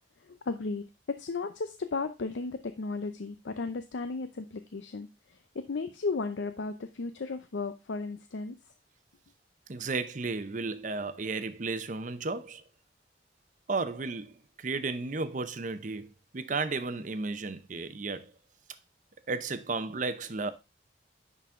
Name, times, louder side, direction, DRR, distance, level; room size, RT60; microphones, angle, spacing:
voice 1, 0.2-8.6, left 4 dB, 85° left, 0.6 m, -35 dB
voice 2, 9.7-12.6 13.7-18.3 19.3-20.5, right 3 dB, 45° right, 0.6 m, -34 dB
10.0 x 4.1 x 3.6 m
head